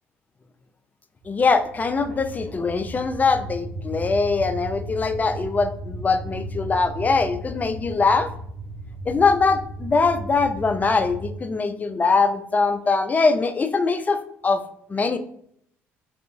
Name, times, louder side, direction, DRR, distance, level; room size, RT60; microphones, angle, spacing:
sound 1, 1.2-11.3, right 1 dB, 50° right, 0.6 m, -35 dB
voice 1, 1.3-8.3 9.1-14.6 14.9-15.2, left 4 dB, 25° left, 9 dB, 0.3 m, -22 dB
2.7 x 2.3 x 2.6 m, 0.69 s
hypercardioid pair, 55°, 6 cm